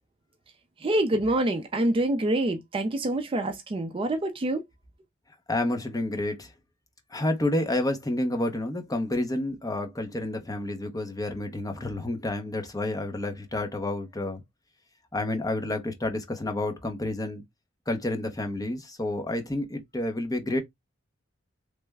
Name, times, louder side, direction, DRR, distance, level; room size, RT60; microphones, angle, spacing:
voice 1, 0.8-4.6, right 1 dB, 25° right, 0.4 m, -26 dB
voice 2, 5.5-6.5 7.1-14.4 15.1-17.4 17.9-20.6, left 1 dB, 15° left, 0.7 m, -29 dB
3.3 x 2.1 x 3.3 m
head